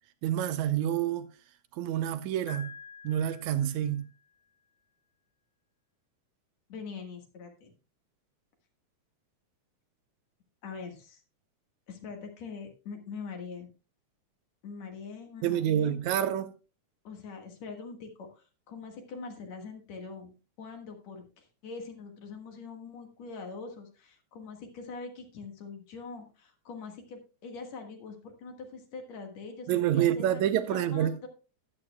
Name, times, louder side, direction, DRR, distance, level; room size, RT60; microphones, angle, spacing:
voice 1, 0.2-1.3 1.8-2.7 3.0-4.1 15.4-16.5 29.7-31.3, right 11 dB, 80° right, 2.0 m, -28 dB
Piano, 2.5-4.4, left 6 dB, 50° left, 2.1 m, -48 dB
voice 2, 6.7-7.7 10.6-11.2 11.9-13.7 14.6-16.0 17.0-31.3, left 4 dB, 65° left, 2.7 m, -43 dB
13.5 x 10.5 x 2.2 m
omnidirectional pair, 3.4 m